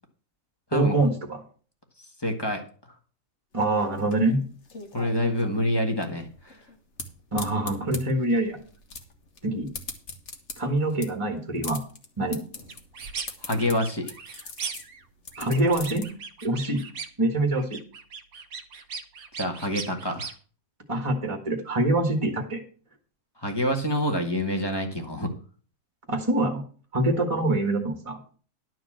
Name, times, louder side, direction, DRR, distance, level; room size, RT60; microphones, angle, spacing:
voice 1, 0.7-1.4 3.5-4.4 7.3-8.6 9.4-9.7 10.6-11.8 12.2-12.4 15.4-16.1 16.4-16.8 17.2-17.8 20.9-22.6 26.1-26.6 26.9-28.2, right 1 dB, 20° right, 3 dB, 1.5 m, -25 dB
voice 2, 2.2-2.6 4.9-6.6 13.4-14.1 19.4-20.3 23.4-25.3, left 1 dB, 15° left, 3 dB, 1.4 m, -27 dB
sound 1, 3.5-16.0, left 4 dB, 50° left, 1.7 m, -41 dB
sound 2, 12.7-13.3 13.6-15.0 15.3-17.2 17.5-20.3, right 6 dB, 65° right, 1.5 m, -38 dB
11.5 x 4.7 x 7.5 m, 0.42 s
omnidirectional pair, 1.6 m